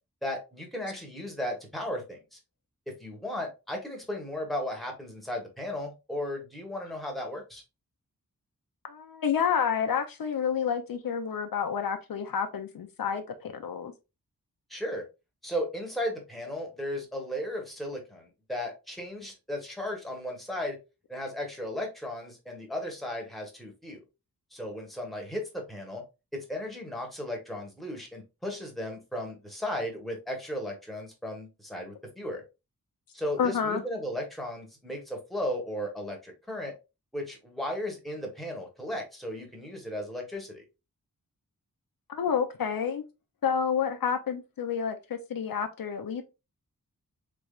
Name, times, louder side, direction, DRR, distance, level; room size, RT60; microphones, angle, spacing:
voice 1, 0.2-2.4 2.9-7.6 14.7-15.0 15.4-20.8 21.1-24.0 24.5-26.0 26.3-32.4 33.1-36.7 37.1-40.6, left 1 dB, ahead, 1.1 m, -35 dB
voice 2, 8.8-13.9 33.4-33.8 42.1-43.0 43.4-46.2, left 7 dB, 75° left, 0.5 m, -29 dB
3.3 x 3.0 x 2.3 m
wide cardioid pair, 90°, 35 cm